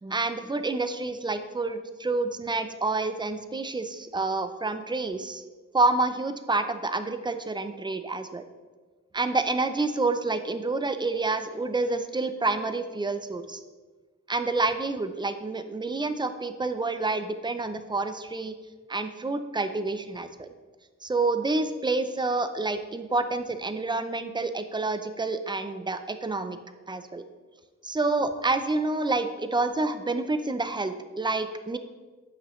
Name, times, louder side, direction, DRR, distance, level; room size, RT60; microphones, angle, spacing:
voice 1, 0.0-5.4 5.7-8.4 9.1-13.6 14.3-18.5 18.9-20.5 21.0-26.6 26.9-27.2 27.8-31.8, right 3 dB, 15° right, 9 dB, 0.4 m, -28 dB
9.1 x 7.5 x 3.1 m, 1.4 s
wide cardioid pair, 160°, 30 cm